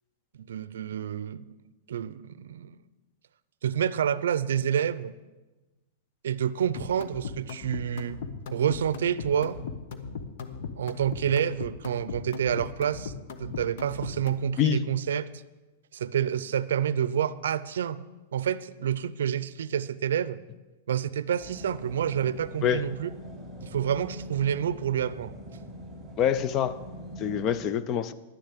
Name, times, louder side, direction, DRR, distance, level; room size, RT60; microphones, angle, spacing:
voice 1, 0.4-1.5 1.9-2.8 3.6-5.1 6.2-8.2 8.5-9.6 10.8-13.1 13.4-15.3 15.9-18.0 18.3-20.4 20.9-23.1 23.6-25.3, right 9 dB, 90° right, 17 dB, 0.5 m, -28 dB
sound 1, 6.7-14.5, left 5 dB, 55° left, 1.0 m, -38 dB
sound 2, 21.4-27.5, equal, 5° right, 3.3 m, -43 dB
voice 2, 26.2-26.8 27.2-28.1, left 9 dB, 25° left, 15 dB, 0.5 m, -25 dB
11.0 x 6.8 x 8.2 m, 1.2 s
supercardioid pair, 160°, 0 cm